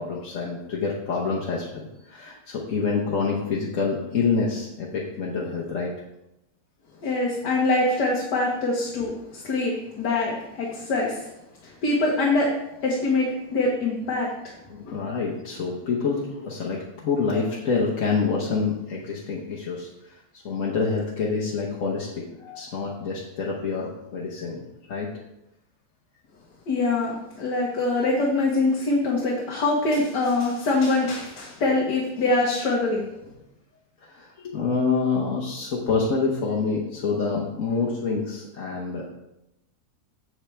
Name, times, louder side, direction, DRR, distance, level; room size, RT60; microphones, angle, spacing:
voice 1, 0.0-5.9 14.7-25.1 34.0-39.1, left 4 dB, 55° left, -4 dB, 1.3 m, -27 dB
voice 2, 7.0-11.3 11.6-12.5 12.8-14.3 14.8-14.9 26.7-33.0, left 2 dB, 80° left, -3 dB, 1.8 m, -24 dB
8.0 x 7.3 x 3.3 m, 0.89 s
omnidirectional pair, 1.8 m